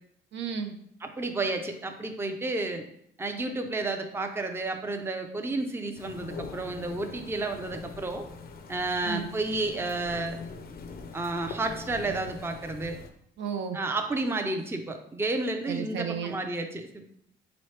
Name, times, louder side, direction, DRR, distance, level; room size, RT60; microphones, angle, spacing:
voice 1, 0.3-0.7 9.0-9.3 13.4-13.8 15.7-16.3, right 7 dB, 70° right, 6 dB, 0.5 m, -33 dB
voice 2, 1.0-2.8 3.2-8.3 8.7-10.4 11.1-13.0 13.7-17.1, right 2 dB, 10° right, 5 dB, 0.4 m, -31 dB
sound 1, 6.0-13.1, left 4 dB, 50° left, 0.5 m, -43 dB
3.9 x 3.0 x 3.2 m, 0.69 s
cardioid pair, 90°, 20 cm